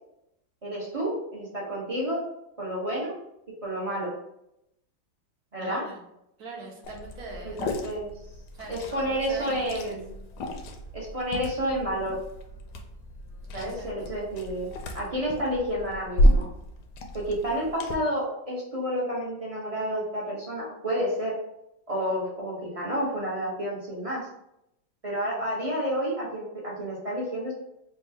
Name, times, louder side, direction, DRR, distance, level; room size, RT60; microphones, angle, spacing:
voice 1, 0.6-2.2 2.6-3.1 3.6-4.1 5.5-5.8 7.4-8.1 8.7-10.1 10.9-12.2 13.5-16.5 17.1-21.3 21.9-24.3 25.0-27.5, equal, 30° right, -5 dB, 0.7 m, -30 dB
voice 2, 5.6-6.0 6.4-7.6 8.6-10.0 13.5-13.9, right 3 dB, 65° right, 0 dB, 1.2 m, -41 dB
Liquid, 6.8-17.9, equal, 75° left, 1.2 m, -31 dB
3.5 x 2.3 x 4.4 m, 0.82 s
omnidirectional pair, 1.9 m